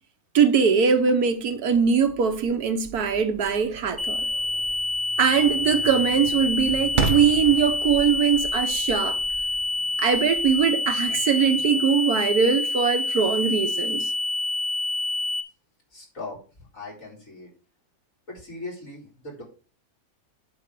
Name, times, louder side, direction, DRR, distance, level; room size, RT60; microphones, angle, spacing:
voice 1, 0.3-4.3 5.2-9.2 10.0-14.1, right 6 dB, 80° right, 1.6 m, -21 dB
sound 1, 0.9-11.9, right 4 dB, 35° right, 1.1 m, -36 dB
sound 2, 4.0-15.4, left 2 dB, 15° left, 1.5 m, -27 dB
voice 2, 15.9-17.5 18.3-19.4, left 2 dB, 60° left, 4.8 m, -39 dB
8.3 x 5.4 x 6.8 m
omnidirectional pair, 1.6 m